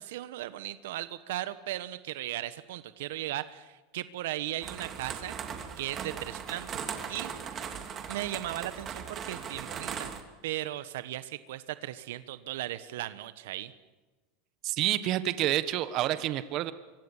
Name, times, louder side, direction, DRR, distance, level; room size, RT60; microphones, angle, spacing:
voice 1, 0.0-5.4 5.8-6.8 7.1-7.3 8.1-10.1 10.4-13.7, right 14 dB, 80° right, 13 dB, 1.2 m, -37 dB
sound 1, 4.6-10.2, right 7 dB, 25° right, 2.8 m, -39 dB
voice 2, 14.6-16.7, right 13 dB, 45° right, 12 dB, 1.4 m, -28 dB
25.0 x 24.5 x 7.4 m, 1.2 s
supercardioid pair, 150°, 0 cm